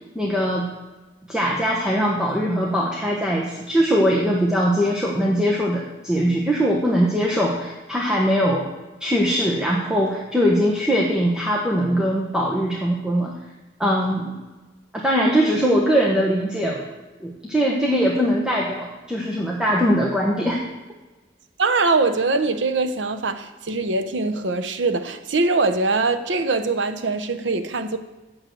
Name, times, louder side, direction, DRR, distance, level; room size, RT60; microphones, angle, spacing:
voice 1, 0.1-0.7 1.3-8.7 9.0-13.3 13.8-14.3 14.9-16.9 17.2-20.6, equal, 5° right, 1.1 m, -21 dB
voice 2, 21.6-28.0, right 3 dB, 85° right, 0.8 m, -22 dB
8.7 x 6.5 x 7.8 m
head